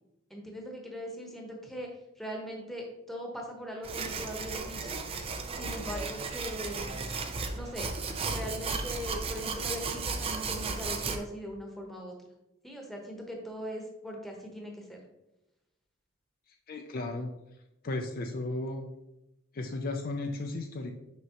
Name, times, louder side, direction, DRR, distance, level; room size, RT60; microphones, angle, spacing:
voice 1, 0.3-1.9 2.2-5.0 5.6-7.1 7.5-7.9 8.2-12.1 12.6-15.0, equal, ahead, 0 dB, 1.0 m, -40 dB
sound 1, 3.8-11.2, right 4 dB, 25° right, 0.5 m, -35 dB
voice 2, 16.7-17.3 17.8-18.9 19.5-20.9, left 2 dB, 45° left, 4 dB, 0.4 m, -34 dB
6.2 x 5.2 x 2.9 m, 0.91 s
head